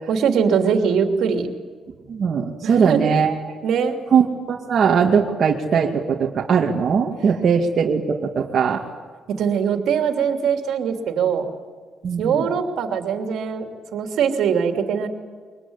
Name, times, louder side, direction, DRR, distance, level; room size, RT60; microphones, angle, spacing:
voice 1, 0.1-1.5 2.6-3.1 3.6-4.0 9.4-11.4 12.2-15.1, right 7 dB, 75° right, 4 dB, 3.0 m, -22 dB
voice 2, 2.1-3.5 4.1-8.8 12.0-12.4, right 6 dB, 55° right, -1 dB, 2.3 m, -20 dB
24.0 x 20.0 x 9.8 m, 1.5 s
cardioid pair, 90°, 0 cm